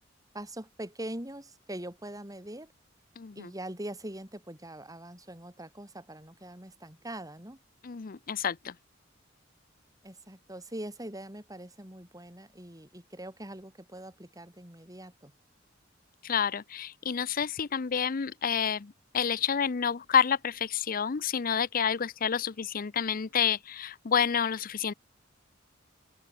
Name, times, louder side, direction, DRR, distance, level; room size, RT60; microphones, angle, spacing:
voice 1, 0.3-2.7 3.4-7.6 10.0-15.3, right 1 dB, 20° right, 7.7 m, -42 dB
voice 2, 3.2-3.5 7.8-8.7 16.2-24.9, left 7 dB, 45° left, 0.6 m, -29 dB
open air
head